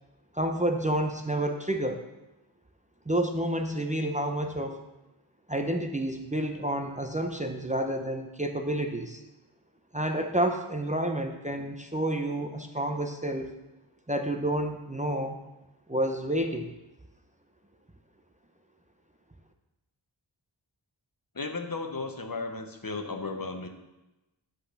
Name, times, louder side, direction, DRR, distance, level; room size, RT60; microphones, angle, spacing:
voice 1, 0.4-2.0 3.1-4.8 5.5-9.2 9.9-13.5 14.1-15.4 15.9-16.7, right 1 dB, 15° right, 3 dB, 0.6 m, -29 dB
voice 2, 21.3-23.7, left 3 dB, 45° left, 5 dB, 1.0 m, -35 dB
8.1 x 4.0 x 6.6 m, 1.0 s
wide cardioid pair, 55°, 47 cm